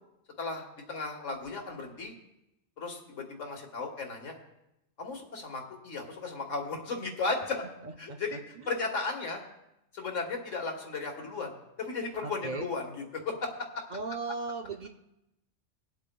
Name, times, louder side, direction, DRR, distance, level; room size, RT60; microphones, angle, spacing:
voice 1, 0.4-2.1 2.8-4.4 5.0-7.6 8.0-8.4 8.7-9.4 9.9-12.9 13.2-13.5, left 3 dB, 75° left, 2 dB, 1.8 m, -35 dB
voice 2, 7.8-8.7 12.2-12.7 13.9-14.9, right 3 dB, 50° right, 4 dB, 0.6 m, -37 dB
24.0 x 8.2 x 2.2 m, 0.87 s
omnidirectional pair, 1.3 m